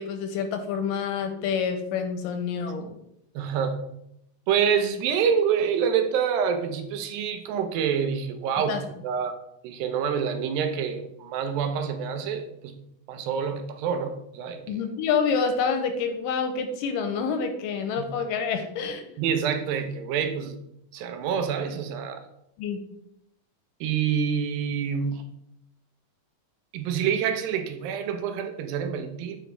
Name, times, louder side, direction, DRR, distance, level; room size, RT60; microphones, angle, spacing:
voice 1, 0.0-2.9 8.7-8.8 14.7-19.0 22.6-22.8, left 6 dB, 80° left, 6 dB, 2.2 m, -27 dB
voice 2, 3.4-3.8 4.5-8.8 9.0-9.3 9.6-12.8 13.1-14.6 18.0-18.1 19.2-20.5 20.9-22.2 23.8-25.2 26.7-29.4, right 7 dB, 80° right, 7 dB, 2.4 m, -27 dB
8.8 x 4.9 x 3.3 m, 0.78 s
omnidirectional pair, 4.2 m